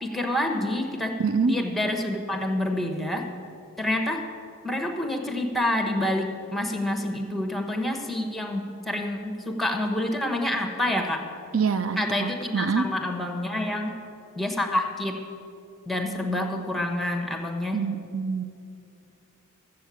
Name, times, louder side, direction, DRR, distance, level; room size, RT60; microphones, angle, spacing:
voice 1, 0.0-1.2 1.5-3.3 3.8-4.2 4.6-11.3 12.0-14.0 14.3-15.2 15.8-17.9, left 1 dB, ahead, 4 dB, 1.0 m, -28 dB
voice 2, 1.2-1.6 11.5-12.9 17.7-18.4, right 5 dB, 65° right, 10 dB, 0.5 m, -25 dB
13.0 x 7.6 x 8.3 m, 2.7 s
head